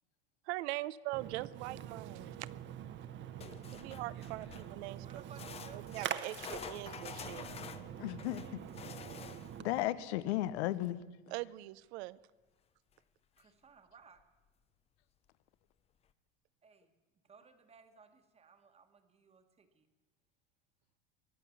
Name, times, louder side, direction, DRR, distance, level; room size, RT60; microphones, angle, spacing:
voice 1, 0.5-2.5 3.7-5.2 5.7-7.5 11.3-12.2, right 18 dB, 80° right, 18 dB, 0.7 m, -42 dB
Splash splatter, 1.1-9.8, right 10 dB, 35° right, 0.9 m, -45 dB
sound 1, 3.4-4.8 5.3-9.7 12.9-13.0 13.4-13.5 14.2-14.3, left 7 dB, 20° left, 0.5 m, -49 dB
voice 2, 5.0-7.7 13.4-14.2 16.6-16.9 17.2-19.9, right 6 dB, 20° right, 7 dB, 1.3 m, -60 dB
voice 3, 8.0-8.6 9.6-11.0, left 15 dB, 90° left, 17 dB, 0.8 m, -35 dB
23.5 x 8.3 x 7.1 m, 1.2 s
supercardioid pair, 140°, 33 cm